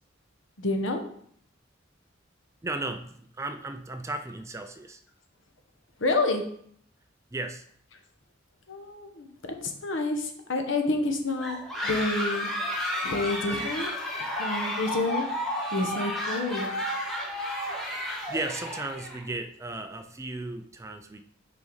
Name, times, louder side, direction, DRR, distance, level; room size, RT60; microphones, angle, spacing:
voice 1, 0.6-1.0 6.0-6.4 8.7-11.6 11.8-12.5 13.0-13.9 14.4-15.3 15.7-16.7, left 2 dB, 70° left, 5 dB, 1.0 m, -28 dB
voice 2, 2.6-5.0 7.3-7.6 18.3-21.2, right 2 dB, 15° right, 7 dB, 0.4 m, -35 dB
sound 1, 11.4-19.2, left 1 dB, ahead, 1.5 m, -32 dB
5.8 x 5.1 x 3.9 m, 0.63 s
head